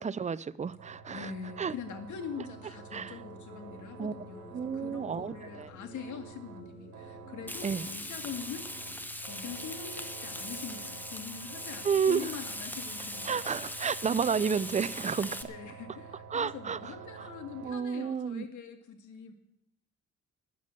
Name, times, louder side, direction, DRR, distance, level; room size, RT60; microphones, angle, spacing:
voice 1, 0.0-1.3 1.6-1.7 2.9-3.2 4.0-4.1 4.5-5.7 7.6-7.9 11.8-12.3 13.3-15.4 16.3-17.3 17.6-18.5, right 6 dB, 25° right, 0.5 m, -31 dB
sound 1, 0.6-17.7, right 6 dB, 85° right, 1.5 m, -49 dB
voice 2, 1.1-13.6 15.5-19.3, left 6 dB, 75° left, 2.0 m, -43 dB
sound 2, 2.3-9.1, left 1 dB, 35° left, 7.6 m, -52 dB
Frying (food), 7.5-15.4, left 1 dB, 5° left, 1.0 m, -40 dB
13.0 x 9.2 x 7.7 m
cardioid pair, 90°, 30 cm